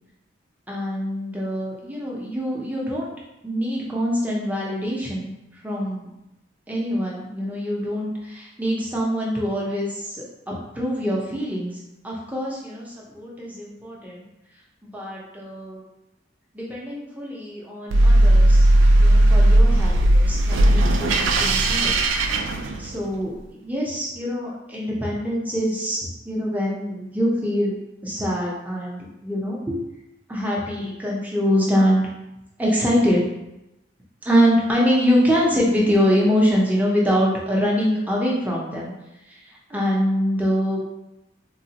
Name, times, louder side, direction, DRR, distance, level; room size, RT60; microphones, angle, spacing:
voice 1, 0.7-3.1 3.4-5.3 5.6-6.1 6.7-14.3 14.8-15.8 16.5-18.7 19.0-22.0 22.8-27.8 28.0-29.9 30.3-32.1 32.6-33.2 34.2-38.9 39.3-40.8, equal, 10° right, -4 dB, 0.5 m, -24 dB
sound 1, 17.9-23.2, right 1 dB, 85° right, 0.3 m, -16 dB
3.7 x 2.1 x 2.8 m, 0.93 s
head